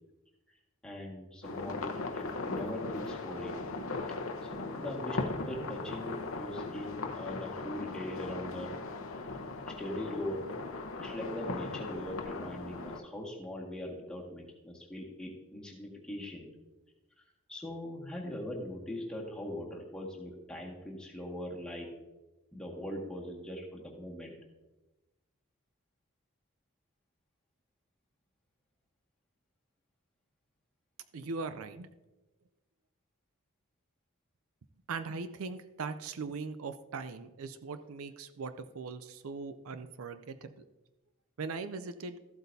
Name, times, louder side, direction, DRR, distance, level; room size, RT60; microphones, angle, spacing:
voice 1, 0.8-3.6 4.5-8.7 9.8-10.5 11.0-16.5 17.5-21.9 22.5-24.3, left 1 dB, 5° left, -4 dB, 1.7 m, -41 dB
sound 1, 1.4-13.0, left 3 dB, 65° left, 0.8 m, -38 dB
voice 2, 31.1-31.9 34.9-40.6 41.4-42.2, right 4 dB, 70° right, 10 dB, 0.5 m, -40 dB
14.0 x 8.0 x 2.7 m, 1.1 s
head